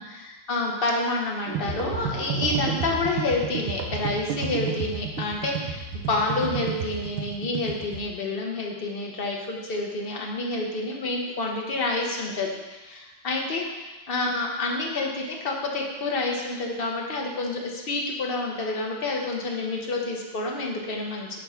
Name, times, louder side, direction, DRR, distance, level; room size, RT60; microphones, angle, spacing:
voice 1, 0.0-21.3, left 2 dB, 50° left, 0 dB, 0.7 m, -28 dB
sound 1, 1.5-8.0, right 6 dB, 80° right, 1.7 m, -31 dB
8.2 x 3.7 x 5.7 m, 1.1 s
omnidirectional pair, 2.2 m